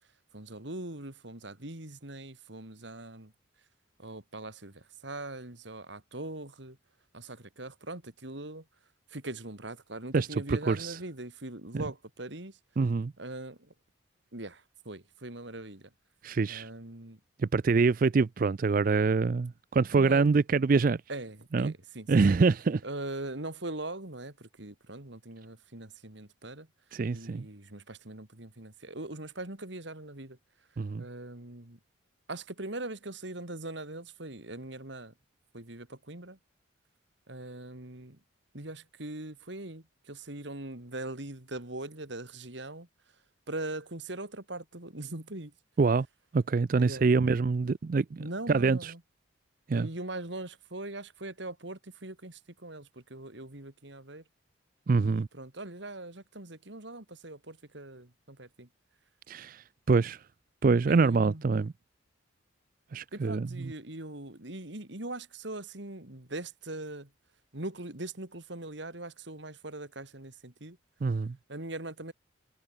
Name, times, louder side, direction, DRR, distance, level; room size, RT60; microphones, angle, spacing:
voice 1, 0.3-3.3 4.0-6.8 7.1-8.6 9.1-12.6 13.2-13.7 14.3-15.9 16.5-17.2 19.9-20.3 21.1-22.1 22.8-26.7 27.1-30.4 31.0-31.8 32.3-35.1 35.5-36.4 37.3-38.2 38.5-42.9 43.5-45.5 46.8-47.1 48.2-49.0 49.7-54.2 54.9-58.7 60.9-61.4 63.1-67.1 67.5-70.8 71.5-72.1, right 2 dB, 65° right, 2.9 m, -41 dB
voice 2, 10.1-11.0 11.7-11.8 12.8-13.1 16.2-16.7 17.4-21.0 21.5-21.7 22.1-22.8 26.9-27.5 30.8-31.1 45.8-46.1 46.3-48.9 49.7-49.9 54.9-55.3 59.3-60.2 60.6-61.7 62.9-63.7 71.0-71.4, right 4 dB, 45° right, 0.4 m, -25 dB
head